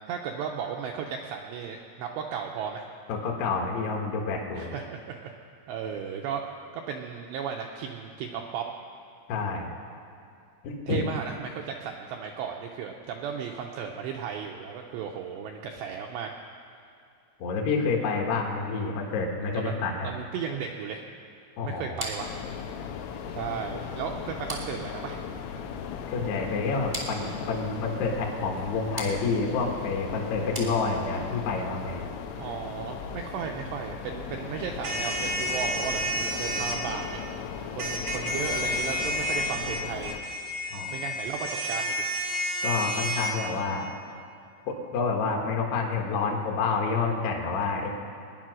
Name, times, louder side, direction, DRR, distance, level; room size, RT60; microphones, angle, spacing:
voice 1, 0.1-2.9 4.5-5.3 5.7-6.4 6.7-8.7 10.9-16.3 19.5-21.0 21.6-22.3 23.3-25.2 32.4-37.2 37.7-40.1 40.9-42.0, right 7 dB, 90° right, 1 dB, 2.5 m, -35 dB
voice 2, 3.1-4.7 9.3-9.7 10.6-11.1 17.4-20.1 21.6-22.0 26.1-32.0 40.7-41.0 42.6-43.9 44.7-47.9, left 4 dB, 65° left, -1 dB, 2.9 m, -28 dB
sound 1, 22.0-31.3, right 1 dB, 40° right, 0.5 m, -42 dB
sound 2, 22.2-40.2, left 7 dB, 85° left, 3.7 m, -37 dB
sound 3, 34.8-36.8 37.8-43.3, equal, 65° right, 0.9 m, -30 dB
22.5 x 10.0 x 6.3 m, 2.4 s
omnidirectional pair, 5.9 m